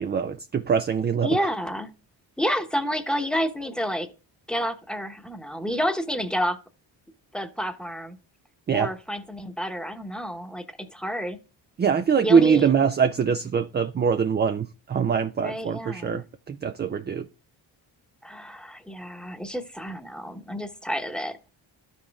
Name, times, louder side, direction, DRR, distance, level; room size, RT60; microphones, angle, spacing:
voice 1, 0.0-1.3 8.7-8.9 11.8-17.3, right 6 dB, 25° right, 0.3 m, -23 dB
voice 2, 1.2-1.9 2.4-4.1 4.5-6.6 7.3-8.2 8.7-11.4 12.2-12.7 15.4-16.2 18.2-21.5, equal, ahead, 1.0 m, -29 dB
12.5 x 5.3 x 2.3 m
supercardioid pair, 50°, 48 cm